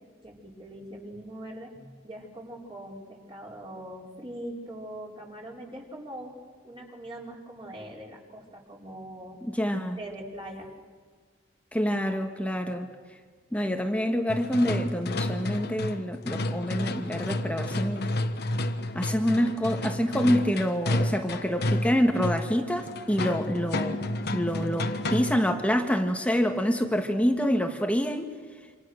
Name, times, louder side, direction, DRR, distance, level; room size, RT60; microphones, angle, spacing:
voice 1, 0.2-1.7 2.0-6.4 6.6-9.4 10.0-10.7, right 1 dB, 25° right, -2 dB, 5.2 m, -42 dB
voice 2, 9.4-10.0 11.7-12.9 13.5-18.1 18.9-24.0 24.3-28.3, equal, 5° left, 4 dB, 1.5 m, -26 dB
sound 1, 14.3-25.5, left 1 dB, 55° left, 1.4 m, -31 dB
27.5 x 27.0 x 6.5 m, 1.5 s
head